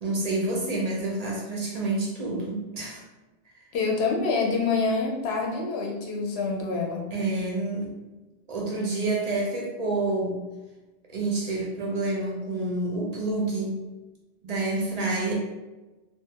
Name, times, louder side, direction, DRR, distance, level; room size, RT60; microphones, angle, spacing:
voice 1, 0.0-3.0 7.1-7.9 8.5-10.4 11.1-13.8 14.4-15.3, right 2 dB, 55° right, -3 dB, 0.4 m, -28 dB
voice 2, 3.7-7.0, left 4 dB, 70° left, 0 dB, 0.8 m, -26 dB
2.4 x 2.3 x 2.7 m, 1.1 s
omnidirectional pair, 1.2 m